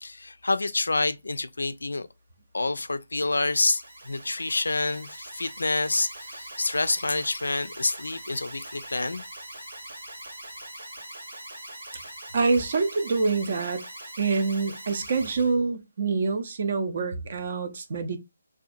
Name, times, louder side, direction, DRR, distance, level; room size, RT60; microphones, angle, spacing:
voice 1, 0.0-2.1 2.5-9.2, left 3 dB, 70° left, 0.3 m, -28 dB
Alarm, 3.2-15.5, right 1 dB, 70° right, 1.1 m, -42 dB
voice 2, 12.3-13.8 14.2-18.2, right 4 dB, 45° right, 0.5 m, -26 dB
2.7 x 2.3 x 2.4 m
figure-of-eight pair, 145°, 0 cm